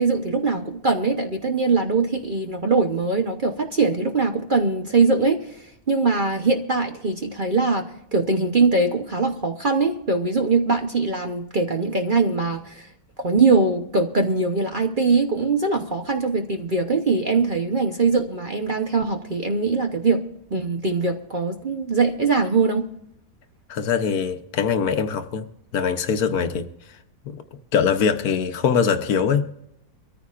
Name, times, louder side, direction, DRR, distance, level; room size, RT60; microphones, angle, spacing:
voice 1, 0.0-12.9 13.2-20.2 20.5-22.9, right 4 dB, 40° right, 4 dB, 0.8 m, -22 dB
voice 2, 23.7-25.5 25.7-26.7 27.3-27.4 27.7-29.4, left 6 dB, 65° left, 8 dB, 1.3 m, -22 dB
24.0 x 14.0 x 2.5 m, 0.78 s
omnidirectional pair, 1.7 m